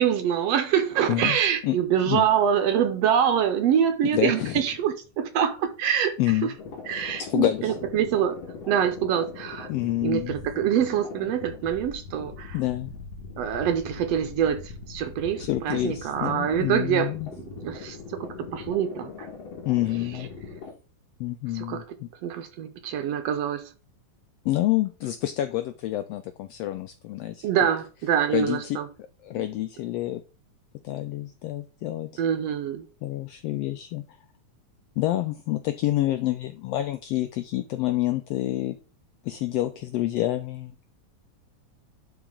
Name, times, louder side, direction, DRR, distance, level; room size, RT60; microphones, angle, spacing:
voice 1, 0.0-6.1 6.4-6.5 6.9-8.4 8.7-9.7 10.0-12.6 13.4-17.1 17.5-19.3 21.5-21.8 22.2-23.7 27.4-28.9 32.2-32.9, right 9 dB, 75° right, 1.6 m, -25 dB
voice 2, 4.1-4.6 6.2-6.5 7.2-7.8 9.7-10.3 12.5-12.9 15.4-17.3 19.7-20.3 21.2-22.1 24.4-27.5 28.3-28.8 29.2-30.2 30.8-32.2 33.0-34.0 35.0-38.8 39.2-40.7, left 15 dB, 90° left, 1.4 m, -28 dB
sound 1, 6.6-20.7, left 4 dB, 60° left, 2.7 m, -41 dB
11.0 x 4.0 x 3.7 m
omnidirectional pair, 3.4 m